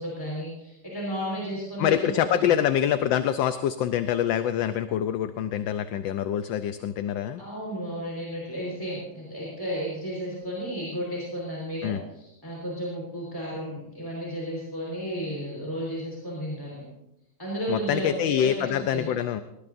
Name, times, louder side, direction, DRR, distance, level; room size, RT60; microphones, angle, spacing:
voice 1, 0.0-2.2 7.4-16.9 17.4-19.1, equal, 10° left, -5 dB, 4.6 m, -33 dB
voice 2, 1.8-7.4 11.8-12.0 17.7-19.4, left 10 dB, 75° left, 10 dB, 1.3 m, -25 dB
20.5 x 20.0 x 2.6 m, 0.88 s
omnidirectional pair, 2.2 m